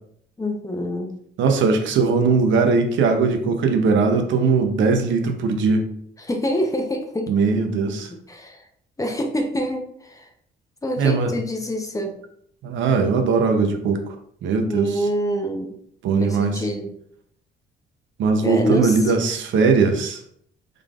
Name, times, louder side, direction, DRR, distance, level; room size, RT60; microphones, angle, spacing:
voice 1, 0.4-1.2 6.2-7.3 7.9-8.6 9.0-10.3 10.8-12.2 14.7-15.8 16.2-17.0 18.4-19.2, equal, 15° left, 3 dB, 0.7 m, -26 dB
voice 2, 1.4-5.9 7.3-8.1 11.0-11.3 12.6-14.0 14.4-15.1 16.0-16.6 18.2-20.2, right 4 dB, 75° right, 6 dB, 0.6 m, -20 dB
3.7 x 3.3 x 2.4 m, 0.66 s
cardioid pair, 90°, 20 cm